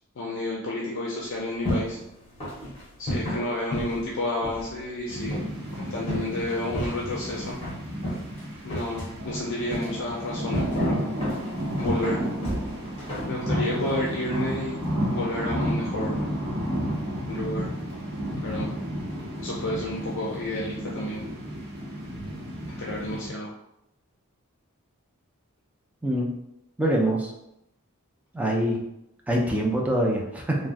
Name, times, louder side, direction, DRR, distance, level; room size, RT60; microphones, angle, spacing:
voice 1, 0.2-2.0 3.0-5.4 5.7-7.6 8.6-11.1 11.8-12.2 13.2-14.8 15.1-16.1 17.2-17.7 18.4-18.7 19.4-21.2 22.8-23.5, left 1 dB, 60° left, -4 dB, 0.5 m, -31 dB
sound 1, 1.2-14.7, equal, 30° left, 1.2 m, -35 dB
sound 2, 5.1-23.3, equal, 50° right, 0.9 m, -31 dB
voice 2, 26.8-27.3 28.3-28.8 29.3-30.6, right 1 dB, 5° right, -1 dB, 0.4 m, -24 dB
3.4 x 2.1 x 2.5 m, 0.81 s
head